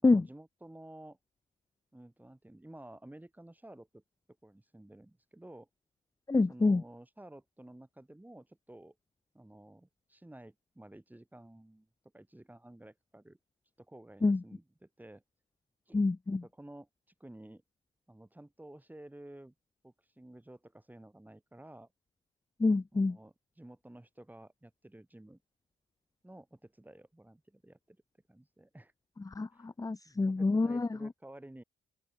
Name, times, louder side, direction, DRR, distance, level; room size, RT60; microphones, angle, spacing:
voice 1, 0.0-1.2 1.9-4.0 4.4-5.7 6.5-9.0 9.3-11.9 12.1-13.4 13.8-15.2 15.9-16.0 16.4-16.9 17.2-17.6 18.1-19.5 19.8-21.9 22.9-25.4 26.2-28.0 28.3-28.9 29.5-29.7 30.0-31.6, right 1 dB, 10° right, 6.4 m, -52 dB
voice 2, 6.3-6.8 14.2-14.4 15.9-16.4 22.6-23.2 29.3-31.1, left 3 dB, 15° left, 1.1 m, -27 dB
open air
cardioid pair, 90°, 20 cm